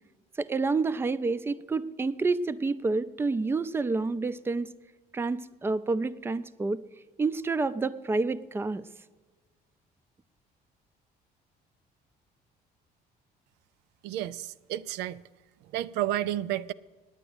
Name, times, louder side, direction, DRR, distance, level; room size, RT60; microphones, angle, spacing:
voice 1, 0.4-4.7 5.1-6.8 7.2-8.8, right 3 dB, 15° right, 0.4 m, -28 dB
voice 2, 14.0-15.2 15.7-16.7, right 13 dB, 90° right, 0.4 m, -31 dB
9.8 x 9.0 x 7.9 m
cardioid pair, 110°, 17 cm